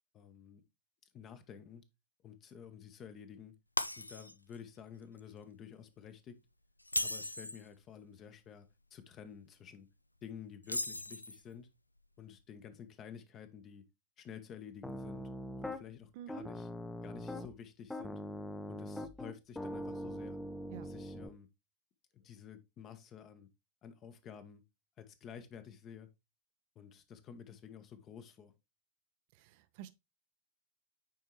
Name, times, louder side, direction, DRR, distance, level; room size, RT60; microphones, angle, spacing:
voice 1, 0.1-0.6 1.1-1.8 2.2-3.5 4.0-6.4 7.0-9.9 10.2-11.7 12.2-13.9 14.2-15.3 15.6-16.7 17.0-18.2 18.7-20.4 20.8-21.5 22.1-23.5 23.8-24.6 25.0-26.1 26.7-28.5, left 8 dB, 30° left, 1.0 m, -51 dB
Shatter, 3.8-4.6 5.0-5.2 6.8-7.7 10.6-11.5, left 1 dB, 85° left, 0.3 m, -37 dB
Piano, 14.8-15.8 16.3-17.5 17.9-21.3, left 1 dB, 5° left, 0.6 m, -42 dB
voice 2, 16.1-16.5 20.7-20.9 29.3-29.9, right 12 dB, 50° right, 0.5 m, -48 dB
9.2 x 4.5 x 3.1 m
figure-of-eight pair, 90°, 0 cm